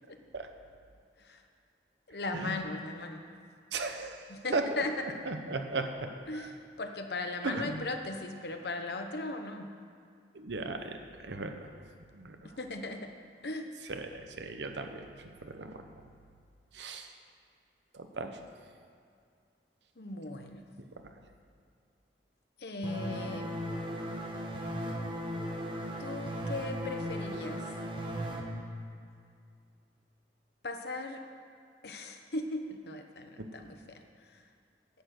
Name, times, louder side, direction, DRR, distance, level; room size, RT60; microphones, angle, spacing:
voice 1, 2.1-3.2 4.3-4.9 6.3-9.7 12.6-13.1 13.4-13.7 20.0-20.6 22.6-23.5 26.0-27.6 30.6-31.2 31.8-34.4, left 2 dB, 65° left, 5 dB, 0.9 m, -38 dB
voice 2, 3.7-4.2 4.5-4.6 5.3-5.9 7.4-7.8 10.3-11.7 12.1-12.5 13.9-15.1 15.4-15.7 16.7-17.1 17.9-18.4 33.4-33.5, right 3 dB, 85° right, 6 dB, 0.9 m, -36 dB
sound 1, 22.8-28.4, equal, 30° right, 1.1 m, -37 dB
10.5 x 6.7 x 8.0 m, 2.3 s
head